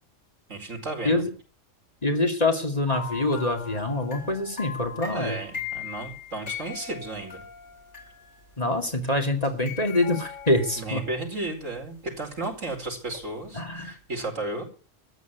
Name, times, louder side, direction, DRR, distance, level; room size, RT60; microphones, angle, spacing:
voice 1, 0.5-1.3 5.1-7.4 10.8-14.6, right 2 dB, 75° right, 1 dB, 5.1 m, -34 dB
voice 2, 2.0-5.4 8.6-11.0 13.5-13.9, left 2 dB, 30° left, 3 dB, 2.6 m, -25 dB
sound 1, 2.9-8.8 9.4-11.5 12.2-13.2 13.6-13.7, left 6 dB, 60° left, 8.1 m, -39 dB
14.0 x 9.7 x 9.3 m, 0.40 s
omnidirectional pair, 1.3 m